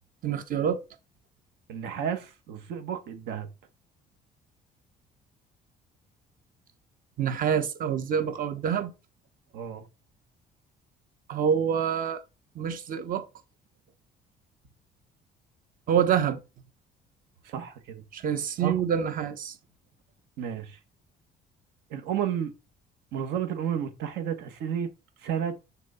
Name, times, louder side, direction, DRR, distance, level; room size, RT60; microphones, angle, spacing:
voice 1, 0.2-0.8 7.2-8.9 11.3-12.2 12.5-13.3 15.9-16.4 18.1-19.5, right 8 dB, 55° right, 1.2 m, -26 dB
voice 2, 1.7-3.5 9.5-9.9 17.4-18.0 18.6-18.8 20.4-20.8 21.9-22.5 23.1-24.9 25.2-25.6, right 8 dB, 85° right, 1.7 m, -32 dB
6.2 x 4.1 x 5.7 m
cardioid pair, 110°, 17 cm